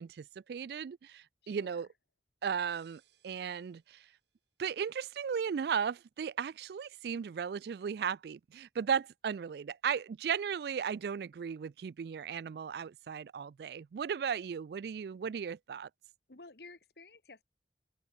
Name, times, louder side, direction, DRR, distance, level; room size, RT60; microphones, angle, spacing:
voice 1, 0.0-1.9 2.4-4.1 4.6-15.9, right 7 dB, 60° right, 0.3 m, -36 dB
voice 2, 1.4-1.8 16.3-17.4, left 3 dB, 65° left, 1.7 m, -53 dB
sound 1, 2.7-4.5, right 8 dB, 80° right, 5.0 m, -69 dB
open air
head